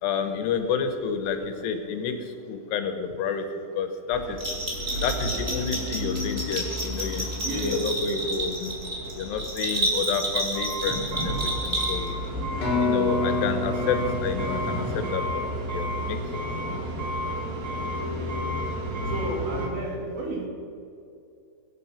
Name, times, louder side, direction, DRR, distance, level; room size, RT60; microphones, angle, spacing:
voice 1, 0.0-2.2 2.5-3.5 3.8-4.4 5.0-8.8 9.1-12.1 12.8-16.4, left 6 dB, 75° left, 8 dB, 3.2 m, -30 dB
sound 1, 4.1-19.7, equal, 40° right, 1.4 m, -32 dB
Bell, 4.4-12.3, right 1 dB, 10° right, 2.6 m, -30 dB
voice 2, 7.4-7.9 19.1-20.5, right 2 dB, 90° right, -1 dB, 5.0 m, -31 dB
sound 2, 12.6-16.4, left 3 dB, 40° left, 4.3 m, -29 dB
23.0 x 8.7 x 5.8 m, 2.6 s
omnidirectional pair, 4.9 m